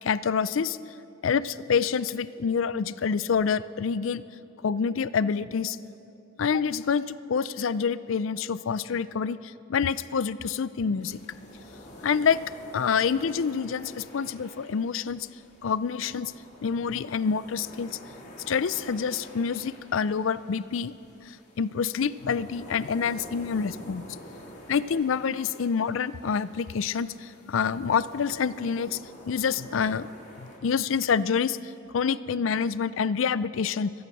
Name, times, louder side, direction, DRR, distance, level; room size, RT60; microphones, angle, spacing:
voice 1, 0.0-0.8 1.2-4.2 4.6-5.8 6.4-11.2 12.0-12.4 12.7-15.3 15.6-16.3 16.6-18.0 18.5-20.9 21.3-24.0 24.7-29.0 29.3-30.1 30.4-33.9, left 6 dB, 75° left, 16 dB, 0.4 m, -27 dB
sound 1, 11.0-30.6, equal, 35° left, 2.8 m, -48 dB
25.0 x 9.4 x 6.1 m, 2.8 s
head